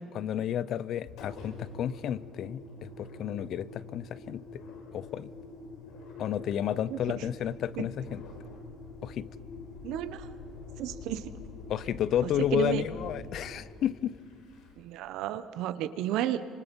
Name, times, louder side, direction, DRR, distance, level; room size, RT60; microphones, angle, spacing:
voice 1, 0.1-4.6 4.9-5.3 6.2-8.2 9.0-9.3 11.7-14.1, left 10 dB, 50° left, 19 dB, 0.6 m, -31 dB
Engine, 1.0-15.0, left 3 dB, 70° left, 4.5 m, -45 dB
voice 2, 9.8-10.3 10.8-11.2 12.5-12.8 14.8-16.4, right 12 dB, 70° right, 12 dB, 1.1 m, -32 dB
29.5 x 25.5 x 5.4 m, 2.4 s
cardioid pair, 160°, 0 cm